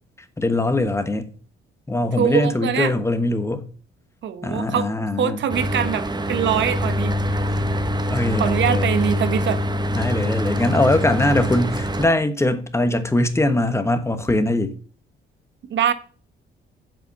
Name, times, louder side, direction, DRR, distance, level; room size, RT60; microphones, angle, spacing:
voice 1, 0.4-1.3 1.9-3.7 4.4-5.4 8.1-8.9 9.9-14.7, left 2 dB, 15° left, 1.1 m, -21 dB
voice 2, 2.2-2.9 4.2-4.9 5.2-7.1 8.4-9.6 15.7-15.9, right 8 dB, 65° right, 1.1 m, -23 dB
Mechanical fan, 5.5-12.1, equal, 20° right, 1.0 m, -24 dB
7.7 x 5.0 x 7.0 m
cardioid pair, 90°, 20 cm